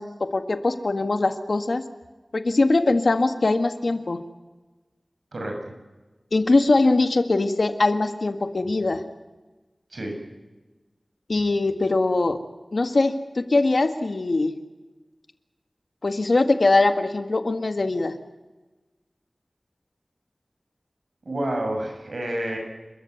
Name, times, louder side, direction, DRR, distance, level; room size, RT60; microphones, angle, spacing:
voice 1, 0.0-1.8 2.3-4.2 6.3-9.0 11.3-12.4 12.7-14.5 16.0-18.1, left 2 dB, 75° left, 8 dB, 1.9 m, -22 dB
voice 2, 5.3-5.7 9.9-10.1 21.2-22.6, right 1 dB, 80° right, 2 dB, 6.9 m, -29 dB
29.5 x 14.0 x 9.4 m, 1.2 s
wide cardioid pair, 45°, 0 cm